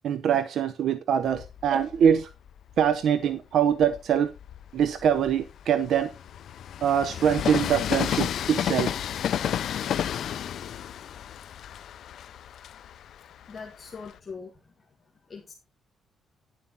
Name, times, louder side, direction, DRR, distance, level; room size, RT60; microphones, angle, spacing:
voice 1, 0.0-2.3 2.8-4.3 4.7-6.1 6.8-8.9, right 8 dB, 70° right, 0.7 m, -23 dB
Train, 1.3-3.0 3.6-14.2, left 10 dB, 70° left, 0.5 m, -32 dB
voice 2, 13.5-14.7 15.3-15.5, left 5 dB, 30° left, 1.8 m, -41 dB
10.5 x 7.4 x 4.0 m
cardioid pair, 100°, 0 cm